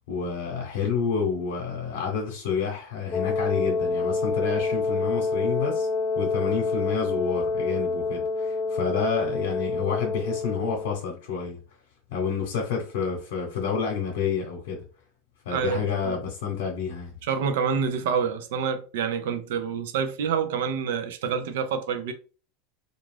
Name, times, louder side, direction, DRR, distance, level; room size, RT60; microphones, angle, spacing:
voice 1, 0.1-5.9 6.2-11.6 12.1-14.8 15.5-17.2, left 6 dB, 85° left, 0.8 m, -29 dB
Wind instrument woodwind instrument, 3.1-11.0, left 3 dB, 25° left, 0.6 m, -27 dB
voice 2, 15.5-16.2 17.2-22.1, right 6 dB, 80° right, 0.5 m, -27 dB
2.4 x 2.3 x 3.2 m
supercardioid pair, 150°, 0 cm